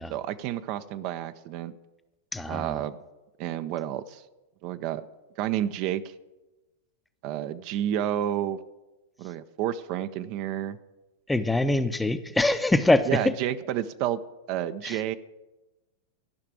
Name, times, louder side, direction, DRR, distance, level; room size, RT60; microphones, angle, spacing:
voice 1, 0.1-1.7 2.5-3.0 3.4-4.2 4.6-5.0 5.4-6.1 7.2-8.6 9.2-10.8 13.1-14.2 14.5-15.2, right 11 dB, 50° right, 12 dB, 0.5 m, -30 dB
voice 2, 2.3-2.8 11.3-13.3 14.8-15.0, left 2 dB, 5° left, 11 dB, 0.6 m, -24 dB
12.5 x 5.8 x 7.5 m, 1.1 s
hypercardioid pair, 110°, 0 cm